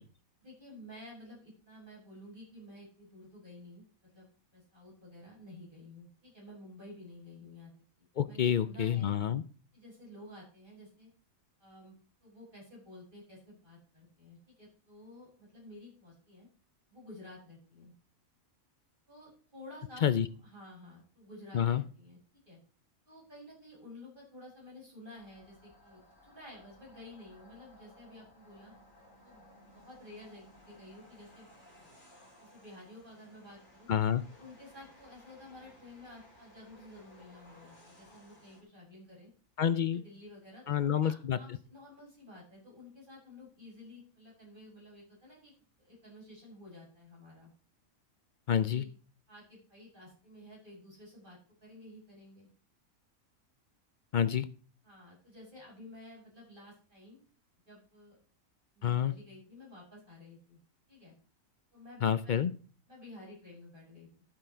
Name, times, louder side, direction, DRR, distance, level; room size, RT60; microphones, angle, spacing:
voice 1, 0.4-4.3 4.5-7.7 8.3-9.1 9.7-11.1 11.6-16.5 16.9-17.9 19.1-22.2 22.5-22.6 23.1-28.7 29.2-29.4 29.7-31.5 31.8-31.9 32.4-33.9 34.3-39.3 39.9-45.5 45.8-47.5 48.7-48.9 49.3-52.5 54.8-57.2 57.7-58.2 58.7-60.6 60.9-61.1 61.7-62.4 62.9-64.1, left 1 dB, 35° right, -4 dB, 7.4 m, -52 dB
voice 2, 8.2-9.4 20.0-20.3 21.5-21.8 33.9-34.2 39.6-40.0 40.7-41.4 48.5-48.8 54.1-54.5 58.8-59.1 62.0-62.5, left 9 dB, 60° left, 14 dB, 0.5 m, -28 dB
sound 1, 25.2-38.6, left 1 dB, 35° left, 3.5 m, -59 dB
12.0 x 7.8 x 4.5 m, 0.40 s
omnidirectional pair, 1.4 m